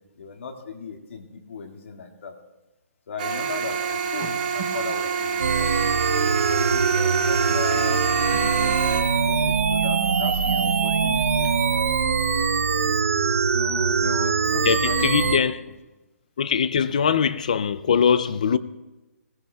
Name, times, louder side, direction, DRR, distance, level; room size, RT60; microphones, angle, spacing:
voice 1, 0.2-2.4 3.1-5.7 6.4-8.8 9.2-11.6 13.5-15.5 16.7-17.2, left 4 dB, 50° left, 1.9 m, -36 dB
sound 1, 3.2-9.0, right 6 dB, 30° right, 1.3 m, -27 dB
sound 2, 5.4-15.4, right 5 dB, 60° right, 0.7 m, -22 dB
voice 2, 14.7-15.6 16.4-18.6, left 7 dB, 30° left, 0.4 m, -21 dB
21.5 x 17.5 x 2.3 m
hypercardioid pair, 180°, 9 cm